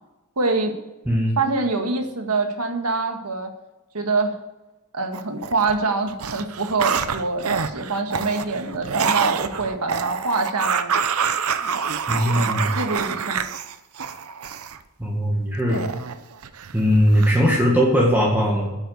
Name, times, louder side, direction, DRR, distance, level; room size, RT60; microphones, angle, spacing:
voice 1, 0.4-0.8 1.4-3.5 3.9-4.4 4.9-10.9 12.3-13.4, right 3 dB, 85° right, 5 dB, 1.8 m, -25 dB
sound 1, 5.1-5.8 6.1-14.8 15.7-16.8 17.1-17.6, right 6 dB, 70° right, 0.8 m, -26 dB
voice 2, 12.1-12.8 15.0-15.9 16.7-18.8, equal, 10° right, -2 dB, 1.7 m, -19 dB
9.9 x 8.2 x 8.0 m, 1.0 s
head